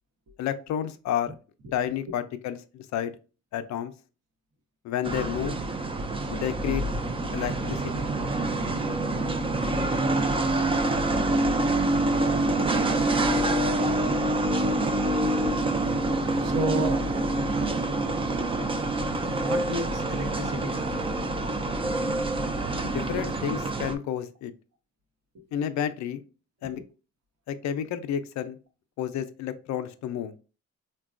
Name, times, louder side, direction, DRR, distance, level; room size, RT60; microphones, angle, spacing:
voice 1, 0.4-1.3 1.7-3.1 3.5-3.9 4.8-5.6 6.3-6.8 7.3-8.1 22.8-24.5 25.5-26.2 26.6-26.8 27.5-28.6 29.0-30.3, left 9 dB, 65° left, 11 dB, 0.4 m, -30 dB
sound 1, 5.0-23.9, right 2 dB, 20° right, 0.3 m, -26 dB
voice 2, 16.0-17.0 19.4-21.1 26.8-26.9, right 2 dB, 60° right, 4 dB, 0.9 m, -32 dB
3.9 x 2.2 x 2.4 m, 0.35 s
cardioid pair, 90°, 30 cm